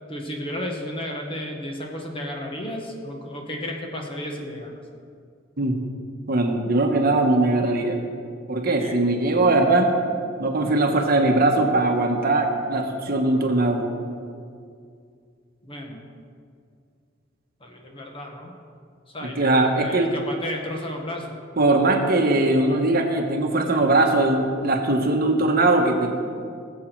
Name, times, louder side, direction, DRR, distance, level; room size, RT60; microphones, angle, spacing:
voice 1, 0.1-4.7 8.6-9.0 15.6-16.0 17.6-18.5 19.1-21.4, left 1 dB, 30° left, 1 dB, 1.5 m, -33 dB
voice 2, 6.3-8.0 8.5-9.9 10.4-13.9 19.2-20.1 21.6-26.1, right 2 dB, 50° right, 3 dB, 1.2 m, -20 dB
19.0 x 7.5 x 4.6 m, 2.3 s
head